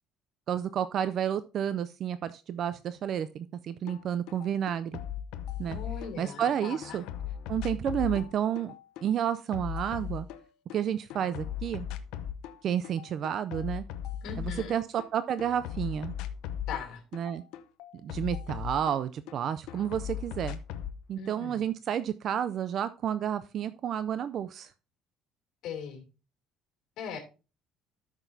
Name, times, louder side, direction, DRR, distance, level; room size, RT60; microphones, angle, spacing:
voice 1, 0.5-5.0 5.6-5.8 6.2-7.0 7.5-8.7 9.0-10.3 10.7-11.9 12.6-13.8 14.4-16.1 17.1-17.4 18.0-20.6 21.1-24.7, right 9 dB, 50° right, 14 dB, 0.4 m, -31 dB
sound 1, 3.9-4.0 4.3-6.5 6.8-10.8 11.1-12.6 12.8-15.1 15.4-19.4 19.7-21.0, left 10 dB, 80° left, 0.7 m, -38 dB
voice 2, 5.6-7.0 14.2-14.8 16.7-17.0 21.2-21.6 25.6-26.0 27.0-27.2, left 6 dB, 65° left, 3 dB, 2.8 m, -39 dB
13.5 x 6.0 x 2.7 m, 0.32 s
cardioid pair, 140°, 0 cm